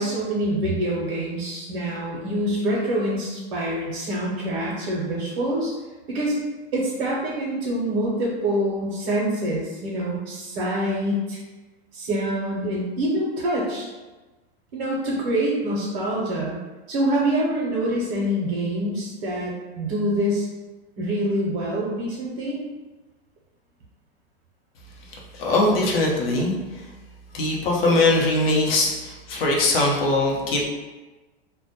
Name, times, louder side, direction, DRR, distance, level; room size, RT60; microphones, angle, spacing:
voice 1, 0.0-5.7 6.1-6.4 6.7-11.4 11.9-13.9 14.7-16.6 16.9-20.5 21.0-22.6, right 1 dB, 50° right, -4 dB, 0.6 m, -25 dB
voice 2, 25.1-26.9 27.3-30.7, left 2 dB, 70° left, -2 dB, 0.6 m, -21 dB
2.1 x 2.1 x 2.7 m, 1.2 s
supercardioid pair, 160°, 31 cm